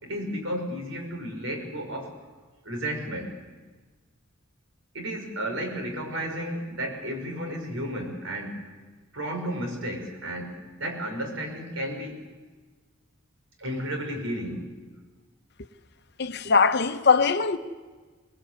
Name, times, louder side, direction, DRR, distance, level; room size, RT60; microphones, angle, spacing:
voice 1, 0.0-2.1 2.6-3.3 4.9-8.7 9.1-12.3 13.6-14.7, equal, 70° right, 5.7 m, -33 dB
voice 2, 16.2-17.6, left 5 dB, 55° left, 0.9 m, -21 dB
25.5 x 19.5 x 8.3 m
head